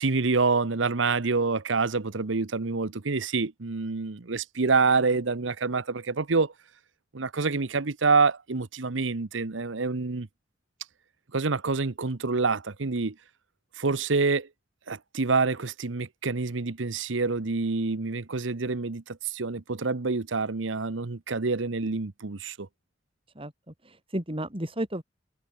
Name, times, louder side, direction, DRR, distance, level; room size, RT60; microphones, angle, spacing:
voice 1, 0.0-6.5 7.1-10.3 11.3-13.1 13.8-14.5 14.9-22.7, right 4 dB, 85° right, 1.0 m, -27 dB
voice 2, 23.3-25.0, right 1 dB, 30° right, 4.6 m, -33 dB
head